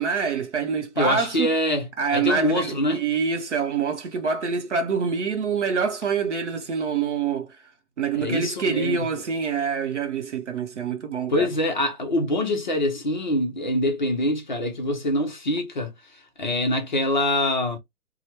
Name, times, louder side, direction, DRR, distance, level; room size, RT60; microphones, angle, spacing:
voice 1, 0.0-1.5 2.0-7.6 8.0-11.5, right 5 dB, 50° right, 0.7 m, -26 dB
voice 2, 1.0-3.0 8.1-9.1 11.3-15.9 16.4-17.8, left 1 dB, 30° left, 0.5 m, -24 dB
3.1 x 2.0 x 2.8 m
figure-of-eight pair, 145°, 46 cm